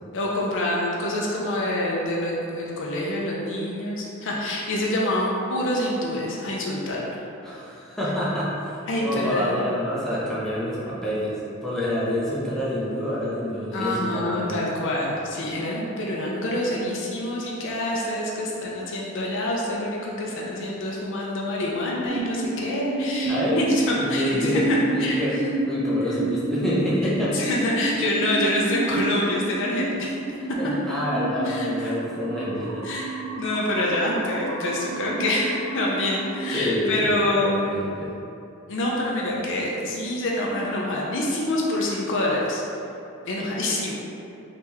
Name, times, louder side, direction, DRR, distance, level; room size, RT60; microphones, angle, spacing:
voice 1, 0.1-7.2 8.9-9.6 13.7-25.2 27.3-30.4 31.5-31.9 32.8-37.9 38.7-42.6 43.2-43.9, left 1 dB, 60° left, -4 dB, 0.5 m, -26 dB
voice 2, 7.4-14.7 23.3-23.6 24.0-25.4 25.6-27.4 30.4-32.8 36.5-38.1, left 1 dB, ahead, -9 dB, 0.7 m, -27 dB
sound 1, 22.1-36.7, right 2 dB, 65° right, 0.4 m, -30 dB
3.3 x 2.8 x 3.4 m, 2.7 s
head